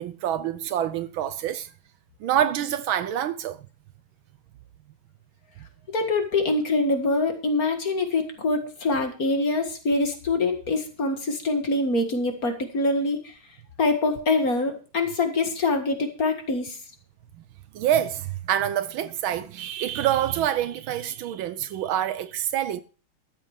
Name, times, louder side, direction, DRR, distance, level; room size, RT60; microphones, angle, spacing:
voice 1, 0.0-1.7 2.2-3.6 17.7-22.8, right 11 dB, 75° right, 1.4 m, -26 dB
voice 2, 5.9-13.3 13.8-16.8, left 2 dB, 45° left, 2.1 m, -24 dB
13.5 x 7.6 x 5.0 m
omnidirectional pair, 2.4 m